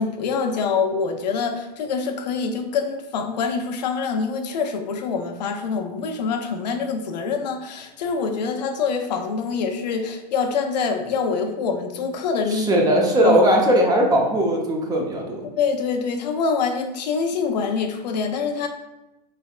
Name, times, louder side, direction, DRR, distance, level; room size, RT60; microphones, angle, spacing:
voice 1, 0.0-12.8 13.2-13.4 15.6-18.7, left 5 dB, 80° left, 5 dB, 0.6 m, -25 dB
voice 2, 12.5-15.4, equal, 15° right, 0 dB, 0.7 m, -19 dB
4.0 x 3.3 x 2.4 m, 0.96 s
hypercardioid pair, 125°, 21 cm